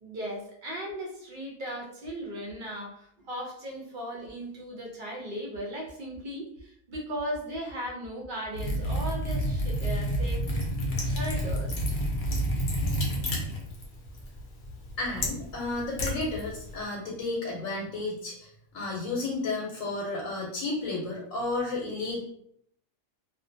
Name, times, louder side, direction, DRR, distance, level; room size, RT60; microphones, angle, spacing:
voice 1, 0.0-10.5 11.0-11.7, equal, 55° right, -1 dB, 0.6 m, -37 dB
Liquid, 8.5-16.8, equal, 55° left, 0.6 m, -30 dB
voice 2, 15.0-22.2, left 2 dB, 80° left, -2 dB, 1.0 m, -32 dB
2.4 x 2.1 x 2.5 m, 0.69 s
omnidirectional pair, 1.4 m